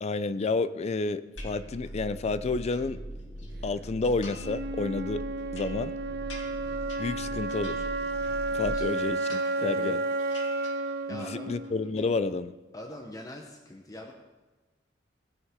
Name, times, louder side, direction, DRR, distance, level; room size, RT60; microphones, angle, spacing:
voice 1, 0.0-3.0 3.6-5.2 5.5-5.9 7.0-7.8 8.5-10.0 11.1-12.5, left 3 dB, 35° left, 14 dB, 0.4 m, -30 dB
sound 1, 1.4-2.1 2.4-3.5 4.0-4.7 5.0-8.5 8.8-9.9 10.2-11.3 11.5-12.1, left 3 dB, 80° left, 1.9 m, -49 dB
sound 2, 1.4-8.7, right 1 dB, 10° right, 0.8 m, -41 dB
Wind instrument woodwind instrument, 4.4-12.4, right 2 dB, 60° right, 0.6 m, -32 dB
voice 2, 9.6-10.0 11.1-11.6 12.7-14.1, left 1 dB, 20° left, 1 dB, 0.9 m, -43 dB
18.5 x 6.4 x 3.7 m, 1.2 s
head